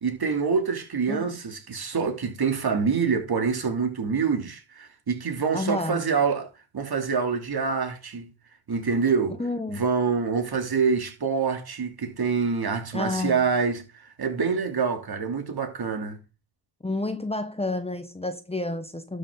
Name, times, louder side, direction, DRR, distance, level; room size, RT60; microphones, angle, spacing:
voice 1, 0.0-8.3 8.7-9.4 9.7-16.2, right 5 dB, 50° right, 3.1 m, -26 dB
voice 2, 5.5-6.0 9.4-9.8 12.9-13.4 16.8-19.2, left 2 dB, 10° left, 1.2 m, -30 dB
12.5 x 6.7 x 3.9 m
cardioid pair, 70°, 48 cm